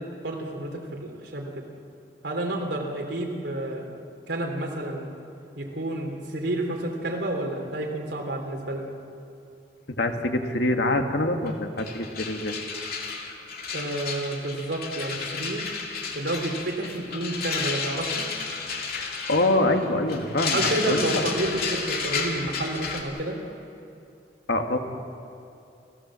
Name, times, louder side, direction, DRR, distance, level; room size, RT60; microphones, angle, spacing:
voice 1, 0.0-1.6 2.2-3.9 4.3-5.1 5.6-8.9 13.7-15.6 16.1-18.2 20.5-23.4, right 1 dB, 80° right, 2 dB, 3.4 m, -30 dB
voice 2, 9.9-12.6 18.9-21.2 24.5-24.8, left 1 dB, 85° left, 4 dB, 1.9 m, -25 dB
sound 1, 11.5-11.6 11.8-23.0, left 5 dB, 60° left, 2.8 m, -32 dB
29.5 x 15.5 x 7.6 m, 2.6 s
head